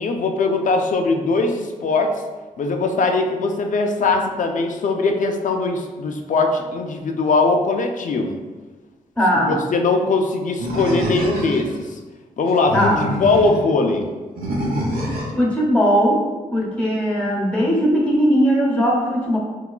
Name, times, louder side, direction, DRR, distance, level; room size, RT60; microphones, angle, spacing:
voice 1, 0.0-2.1 2.6-8.3 9.5-12.0 12.4-12.8 13.2-14.1, left 3 dB, 55° left, 4 dB, 0.5 m, -20 dB
voice 2, 9.2-9.6 12.7-13.0 15.4-16.2 16.5-19.4, equal, 10° left, -2 dB, 1.1 m, -18 dB
Animal, 10.6-11.8 12.5-13.6 14.4-15.4, equal, 75° right, 0.8 m, -25 dB
4.6 x 2.2 x 2.3 m, 1.3 s
cardioid pair, 60°, 15 cm